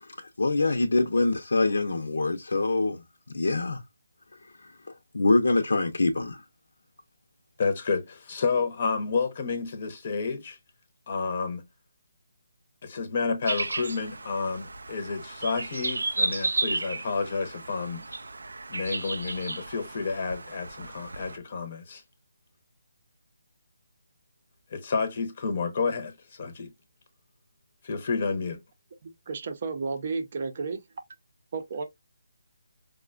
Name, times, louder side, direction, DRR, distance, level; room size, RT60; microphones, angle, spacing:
voice 1, 0.0-3.8 4.6-4.7 5.1-6.4, left 2 dB, 80° left, 0.6 m, -25 dB
voice 2, 7.6-10.6 11.1-11.6 12.8-18.0 18.7-22.0 24.7-26.7 27.8-28.6, left 4 dB, 40° left, 0.7 m, -30 dB
sound 1, 13.5-21.4, right 3 dB, 85° right, 0.4 m, -33 dB
voice 3, 29.3-30.8 31.5-31.8, right 4 dB, 40° right, 0.6 m, -32 dB
4.8 x 2.2 x 2.3 m
hypercardioid pair, 170°, 0 cm